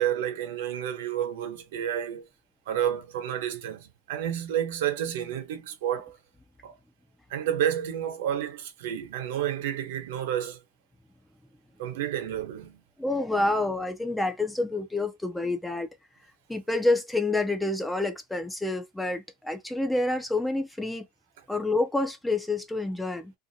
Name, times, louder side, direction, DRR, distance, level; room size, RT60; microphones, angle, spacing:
voice 1, 0.0-2.3 2.7-6.2 6.6-6.8 7.3-10.6 11.8-12.8, right 10 dB, 90° right, 0.9 m, -30 dB
voice 2, 13.0-15.9 16.5-21.1 21.5-23.3, left 2 dB, 5° left, 0.3 m, -28 dB
2.6 x 2.5 x 2.7 m
supercardioid pair, 175°, 0 cm